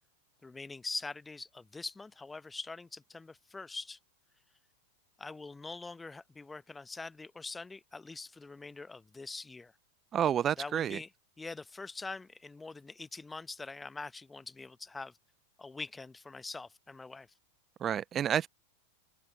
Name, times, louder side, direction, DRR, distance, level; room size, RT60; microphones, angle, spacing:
voice 1, 0.4-4.0 5.2-9.7 10.6-11.1 11.4-15.1 15.6-17.3, left 3 dB, 10° left, 1.0 m, -43 dB
voice 2, 10.1-11.0 17.8-18.5, right 9 dB, 25° right, 0.7 m, -29 dB
open air
figure-of-eight pair, 90°, 0 cm